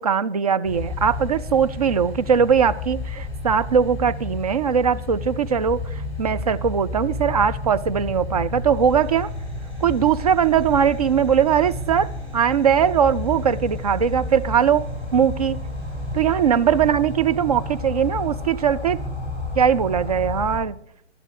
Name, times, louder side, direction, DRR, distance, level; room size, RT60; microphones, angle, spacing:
voice 1, 0.0-5.8 6.2-9.3 9.8-15.6 16.1-19.0 19.6-20.8, right 7 dB, 35° right, 0.4 m, -20 dB
sound 1, 0.6-20.6, left 2 dB, 15° right, 6.5 m, -31 dB
17.0 x 11.5 x 4.8 m
figure-of-eight pair, 135°, 34 cm